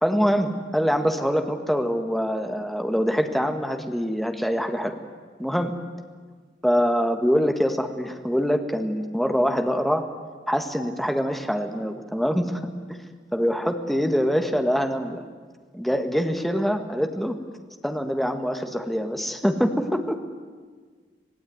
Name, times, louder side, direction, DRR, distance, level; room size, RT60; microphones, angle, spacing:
voice 1, 0.0-5.0 5.4-5.7 6.6-10.1 10.5-12.6 12.9-13.0 13.3-15.2 15.7-17.4 17.8-20.2, equal, ahead, 5 dB, 1.8 m, -24 dB
25.5 x 18.0 x 9.7 m, 1.5 s
head